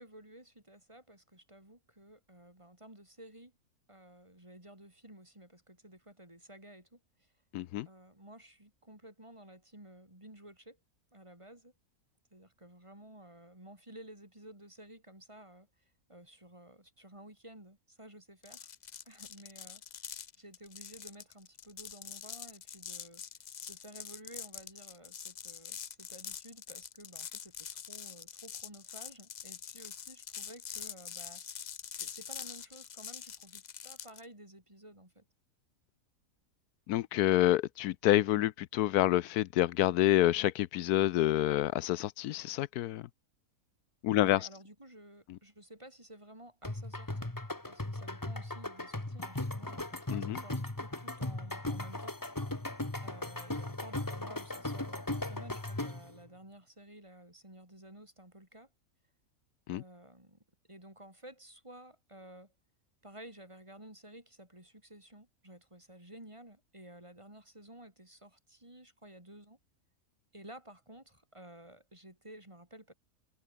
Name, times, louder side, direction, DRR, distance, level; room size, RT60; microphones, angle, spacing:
voice 1, 0.0-3.5 3.9-7.3 7.8-10.8 11.1-11.7 12.3-15.7 16.1-18.7 19.1-19.8 20.4-23.2 23.7-31.4 31.9-35.2 44.1-47.3 47.6-52.2 53.0-58.7 59.7-60.4 60.7-62.5 63.0-69.6 70.3-72.9, right 1 dB, 20° right, 4.3 m, -53 dB
voice 2, 7.5-7.9 36.9-43.1 44.0-44.4 50.1-50.4 59.7-59.8, left 14 dB, 85° left, 1.1 m, -28 dB
sound 1, 18.4-34.3, left 8 dB, 55° left, 0.5 m, -45 dB
sound 2, 46.6-56.2, left 2 dB, 15° left, 1.6 m, -38 dB
omnidirectional pair, 1.6 m